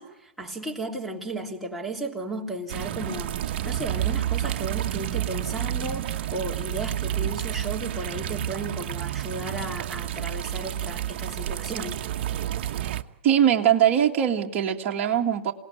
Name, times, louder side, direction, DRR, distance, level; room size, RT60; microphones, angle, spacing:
voice 1, 0.0-3.3 3.6-12.0, right 2 dB, ahead, -2 dB, 3.1 m, -34 dB
sound 1, 2.7-13.0, right 12 dB, 55° right, 1.1 m, -30 dB
voice 2, 13.2-15.5, right 9 dB, 35° right, 0 dB, 1.9 m, -21 dB
27.5 x 18.5 x 9.5 m, 0.85 s
hypercardioid pair, 120°, 6 cm